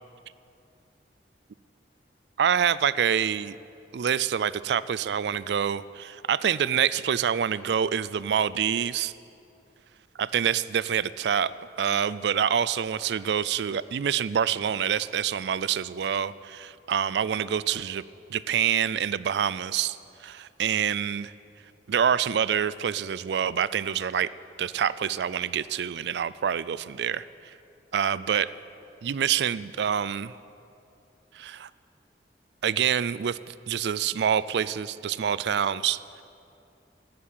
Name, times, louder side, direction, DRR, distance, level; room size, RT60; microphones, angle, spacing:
voice 1, 2.4-3.6 3.9-9.1 10.2-11.5 11.8-18.0 18.3-20.0 20.2-21.3 21.9-24.3 24.6-27.3 27.9-28.5 29.0-30.3 31.3-31.7 32.6-36.2, right 8 dB, 70° right, 18 dB, 0.4 m, -26 dB
13.0 x 9.5 x 8.7 m, 2.6 s
head